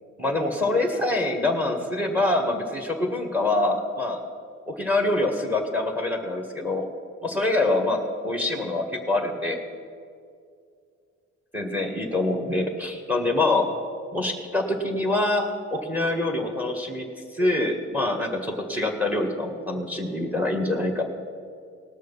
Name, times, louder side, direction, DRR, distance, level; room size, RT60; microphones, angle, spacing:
voice 1, 0.2-4.2 4.7-6.8 7.2-8.0 8.2-9.6 11.5-13.6 14.1-15.5 15.7-17.0 17.3-21.0, left 2 dB, 5° right, 4 dB, 1.6 m, -25 dB
18.5 x 6.5 x 5.4 m, 2.3 s
cardioid pair, 90°, 30 cm